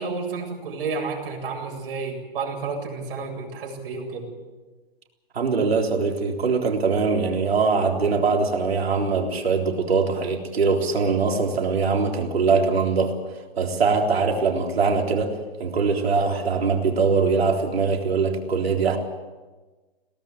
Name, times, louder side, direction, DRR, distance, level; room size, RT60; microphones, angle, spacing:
voice 1, 0.0-4.3, right 4 dB, 65° right, 1 dB, 7.8 m, -31 dB
voice 2, 5.3-13.1 13.6-19.0, right 4 dB, 85° right, 2 dB, 3.8 m, -22 dB
22.0 x 18.0 x 7.8 m, 1.3 s
hypercardioid pair, 130°, 30 cm